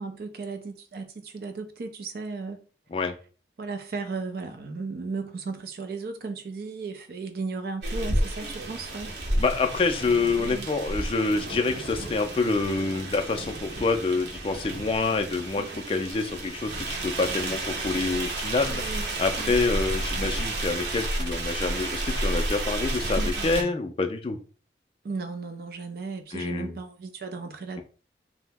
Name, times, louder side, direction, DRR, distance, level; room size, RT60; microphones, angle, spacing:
voice 1, 0.0-2.6 3.6-9.1 10.4-10.7 15.6-15.8 18.7-19.1 19.4-19.5 23.2-23.7 25.0-27.8, right 4 dB, 55° right, 0.4 m, -35 dB
sound 1, 7.8-23.6, right 1 dB, 80° right, 0.8 m, -31 dB
voice 2, 9.4-18.8 19.2-24.4 26.3-26.8, left 3 dB, 30° left, 0.3 m, -27 dB
2.7 x 2.0 x 3.3 m
head